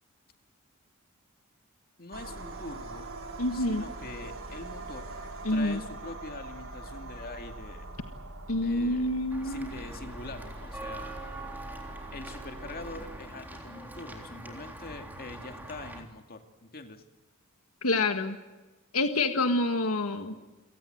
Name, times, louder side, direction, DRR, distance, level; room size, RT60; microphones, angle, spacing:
voice 1, 2.0-3.1 3.5-5.2 5.5-7.9 8.6-11.1 12.1-17.0, left 2 dB, 45° left, 6 dB, 2.4 m, -44 dB
sound 1, 2.1-13.2, right 2 dB, 65° right, 3.6 m, -43 dB
voice 2, 3.4-3.8 5.4-5.8 8.5-9.7 17.8-18.4 18.9-20.4, left 2 dB, 90° left, 7 dB, 1.7 m, -27 dB
Walk footsteps / Bell, 9.3-16.0, right 2 dB, 10° right, 3.6 m, -43 dB
29.5 x 18.0 x 8.0 m, 1.2 s
head